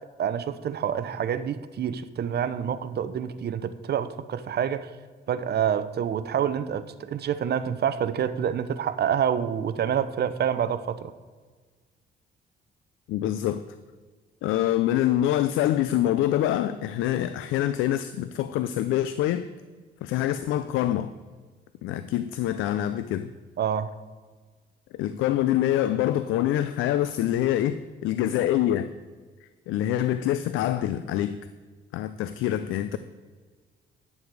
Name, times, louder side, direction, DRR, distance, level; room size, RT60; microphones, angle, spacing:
voice 1, 0.2-4.9 5.3-11.1 23.6-23.9, right 8 dB, 55° right, 12 dB, 0.7 m, -27 dB
voice 2, 13.1-13.6 14.4-19.5 20.0-21.1 21.8-23.3 24.9-28.9 29.4-31.4 31.9-33.0, left 12 dB, 90° left, 13 dB, 0.4 m, -25 dB
11.0 x 7.1 x 4.7 m, 1.5 s
cardioid pair, 90°, 20 cm